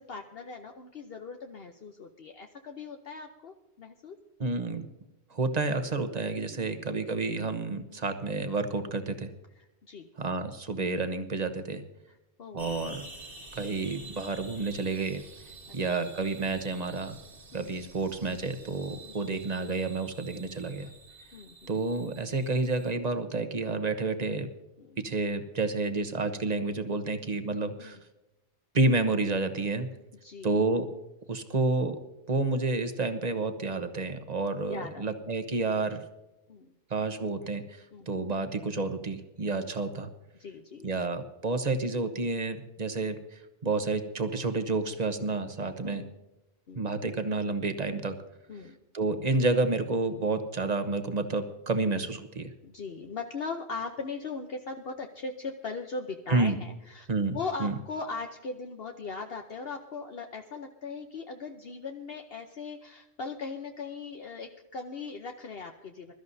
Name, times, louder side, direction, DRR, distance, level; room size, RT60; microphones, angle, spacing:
voice 1, 0.0-4.2 6.4-6.7 7.9-8.0 9.6-10.1 12.1-12.7 17.5-17.7 19.0-19.2 21.3-21.7 24.8-25.0 27.8-28.0 30.2-30.6 34.6-35.1 36.5-36.7 37.9-38.1 39.6-39.7 40.4-40.9 45.8-46.1 46.7-46.8 48.5-48.8 52.6-57.1 57.3-66.1, left 4 dB, 60° left, 4 dB, 1.1 m, -39 dB
voice 2, 4.4-4.8 5.3-9.3 10.2-11.8 12.5-13.1 13.5-15.2 15.7-17.1 17.5-20.9 21.7-24.5 25.0-28.0 28.7-29.9 30.4-30.9 31.3-32.0 32.3-36.0 36.9-40.1 40.8-46.0 46.7-48.2 48.9-52.5 56.3-56.6 57.1-57.7, right 3 dB, 40° right, 8 dB, 1.2 m, -30 dB
sound 1, 12.6-22.9, right 1 dB, 55° right, 1.6 m, -49 dB
23.0 x 13.0 x 2.7 m, 0.98 s
omnidirectional pair, 1.2 m